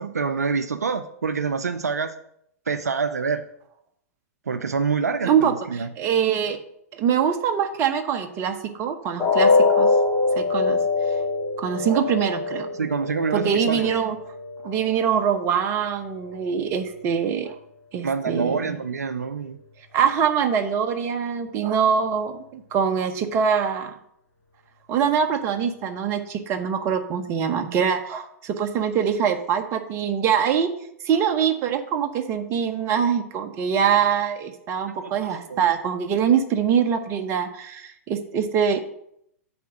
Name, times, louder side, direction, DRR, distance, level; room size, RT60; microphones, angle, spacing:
voice 1, 0.0-2.1 2.7-3.4 4.5-5.9 12.7-13.9 18.0-19.6 35.5-35.6, right 5 dB, 70° right, 11 dB, 0.5 m, -26 dB
voice 2, 5.2-6.6 6.9-10.0 10.4-11.1 11.6-12.7 13.3-14.2 14.6-17.6 17.9-18.7 19.9-24.0 24.9-30.7 31.0-38.8, right 7 dB, 30° right, 7 dB, 0.8 m, -24 dB
sound 1, 9.2-15.2 15.6-15.8 16.2-16.3, left 4 dB, 25° left, 2.3 m, -23 dB
6.9 x 4.4 x 6.3 m, 0.74 s
figure-of-eight pair, 105°, 9 cm